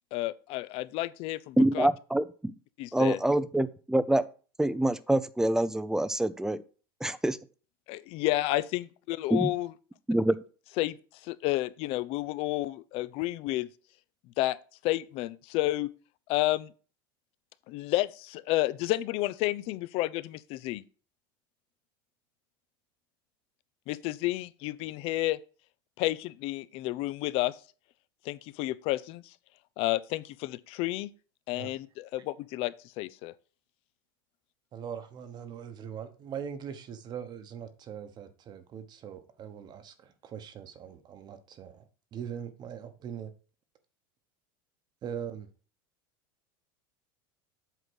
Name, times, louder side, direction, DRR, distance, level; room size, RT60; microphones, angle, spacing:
voice 1, 0.1-1.9 2.8-3.2 7.9-9.7 10.8-11.0 11.2-13.7 14.4-14.6 14.8-15.9 16.3-16.7 17.7-20.8 23.9-25.4 26.0-27.6 28.2-29.3 29.8-31.1 31.5-33.3, left 17 dB, 55° left, 0.5 m, -31 dB
voice 2, 1.6-2.5 2.9-4.2 4.6-6.6 7.0-7.4 9.3-9.5 10.1-10.4, right 1 dB, 5° right, 0.5 m, -26 dB
voice 3, 34.7-43.3 45.0-45.5, right 8 dB, 35° right, 1.0 m, -41 dB
8.1 x 3.8 x 6.2 m
supercardioid pair, 115°, 12 cm